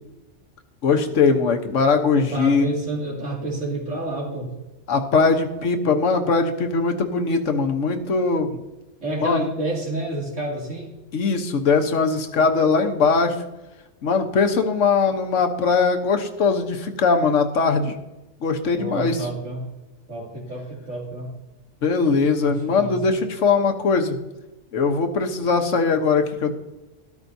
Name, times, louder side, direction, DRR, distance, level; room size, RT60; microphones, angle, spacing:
voice 1, 0.8-2.7 4.9-8.5 9.2-9.5 11.1-13.3 14.0-18.0 18.4-19.3 21.8-24.2 24.7-26.5, left 4 dB, 85° left, 6 dB, 1.4 m, -20 dB
voice 2, 2.1-4.5 9.0-10.9 18.8-19.7 20.1-21.3 22.4-23.2, right 2 dB, 85° right, -3 dB, 2.8 m, -29 dB
13.0 x 12.0 x 2.7 m, 1.0 s
omnidirectional pair, 1.3 m